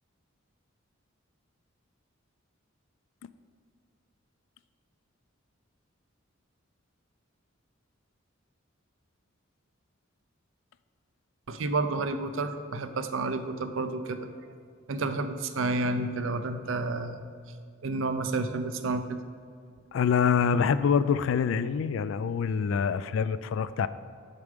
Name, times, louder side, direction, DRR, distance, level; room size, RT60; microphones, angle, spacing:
voice 1, 11.5-14.3 14.9-17.2 17.8-19.2, right 3 dB, 70° right, 9 dB, 0.5 m, -30 dB
voice 2, 19.9-23.9, left 6 dB, 65° left, 14 dB, 0.3 m, -25 dB
6.6 x 6.2 x 5.1 m, 2.2 s
head